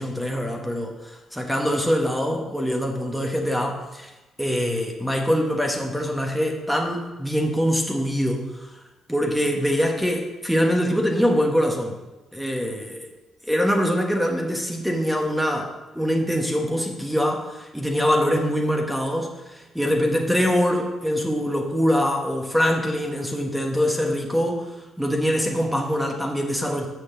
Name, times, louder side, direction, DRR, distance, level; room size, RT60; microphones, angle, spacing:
voice 1, 0.0-4.1 4.4-8.7 9.1-12.0 12.3-12.8 13.5-26.9, equal, ahead, 2 dB, 1.2 m, -24 dB
6.4 x 6.3 x 7.5 m, 1.1 s
cardioid pair, 90°, 0 cm